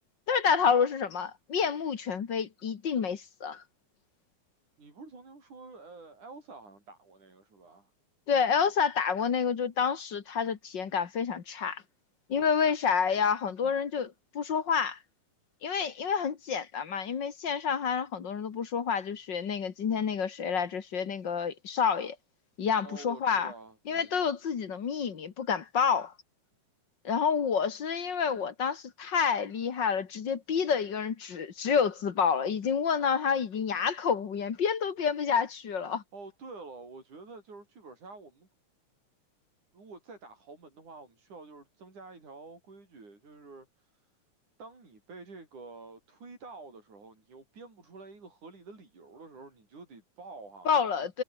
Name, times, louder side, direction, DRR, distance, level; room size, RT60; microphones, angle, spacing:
voice 1, 0.3-3.6 8.3-11.8 12.3-15.0 15.6-22.2 22.6-23.5 23.9-26.1 27.0-36.0 50.7-51.2, left 6 dB, 45° left, 1.9 m, -28 dB
voice 2, 4.8-7.9 12.3-12.7 13.6-13.7 22.8-24.1 36.1-38.5 39.7-43.9 44.6-51.1, right 3 dB, 80° right, 8.8 m, -49 dB
omnidirectional pair, 3.5 m